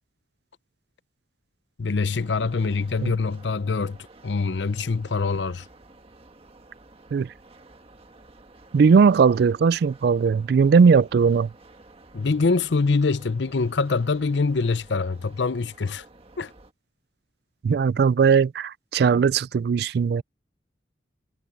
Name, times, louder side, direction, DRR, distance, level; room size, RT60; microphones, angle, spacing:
voice 1, 1.8-4.0 4.2-5.6 12.1-16.0 16.4-16.5, left 4 dB, 85° left, 0.6 m, -24 dB
sound 1, 2.1-16.7, right 2 dB, 35° right, 1.4 m, -51 dB
voice 2, 8.7-11.5 17.6-20.2, right 5 dB, 60° right, 0.3 m, -19 dB
head